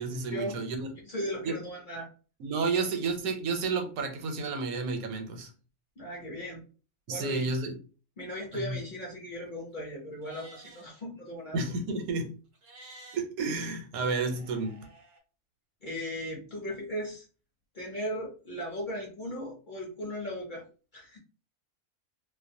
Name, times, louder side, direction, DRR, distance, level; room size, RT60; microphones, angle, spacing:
voice 1, 0.0-0.9 1.4-1.5 2.4-5.5 7.1-7.8 8.5-8.8 11.5-12.3 13.1-14.8, right 4 dB, 80° right, 1.1 m, -31 dB
voice 2, 1.1-2.1 2.7-2.8 6.0-6.6 7.1-7.5 8.2-11.6 15.8-17.3 17.7-20.6 20.9-21.2, equal, 45° left, 0.7 m, -37 dB
Livestock farm animals working animals, 10.1-10.9 12.5-13.2 14.3-15.2, right 2 dB, 50° right, 0.6 m, -51 dB
2.5 x 2.1 x 2.6 m
omnidirectional pair, 1.5 m